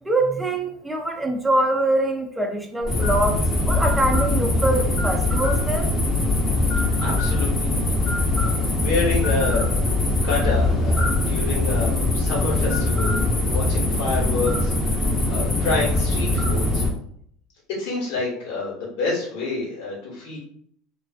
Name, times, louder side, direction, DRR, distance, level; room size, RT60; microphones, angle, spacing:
voice 1, 0.0-3.4 3.7-5.9, right 2 dB, 10° right, 2 dB, 0.5 m, -23 dB
sound 1, 2.8-16.9, left 2 dB, 25° left, 0.9 m, -22 dB
voice 2, 7.0-7.8 8.4-8.5 8.7-9.7 10.1-13.2 13.5-16.9 17.8-20.4, left 3 dB, 70° left, -4 dB, 1.2 m, -28 dB
2.4 x 2.3 x 2.4 m, 0.64 s
hypercardioid pair, 85°, 0 cm